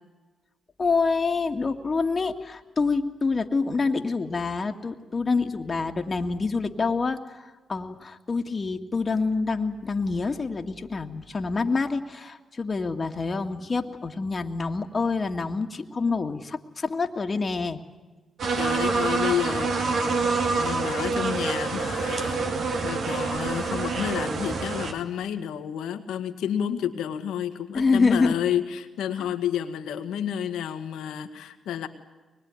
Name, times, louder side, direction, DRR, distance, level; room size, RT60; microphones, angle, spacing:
voice 1, 0.8-17.8 27.7-28.4, left 4 dB, 45° left, 5 dB, 2.0 m, -26 dB
sound 1, 18.4-24.9, right 4 dB, 65° right, 2.7 m, -26 dB
voice 2, 18.6-31.9, left 9 dB, 80° left, 8 dB, 1.8 m, -30 dB
24.0 x 21.0 x 9.7 m, 1.3 s
supercardioid pair, 45°, 0 cm